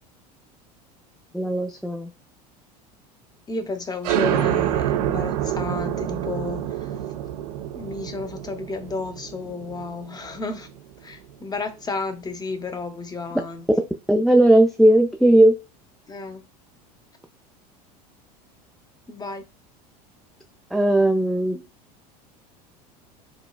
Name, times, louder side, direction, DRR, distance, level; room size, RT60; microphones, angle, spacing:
voice 1, 1.3-2.1 14.1-15.5 20.7-21.6, right 1 dB, ahead, 0.3 m, -17 dB
voice 2, 3.5-6.9 7.7-10.7 11.0-13.7 16.1-16.4 19.1-19.4 21.5-21.6, left 3 dB, 20° left, 0.7 m, -32 dB
sound 1, 4.0-11.3, right 11 dB, 70° right, 0.5 m, -27 dB
5.1 x 2.2 x 2.2 m
hypercardioid pair, 80°, 21 cm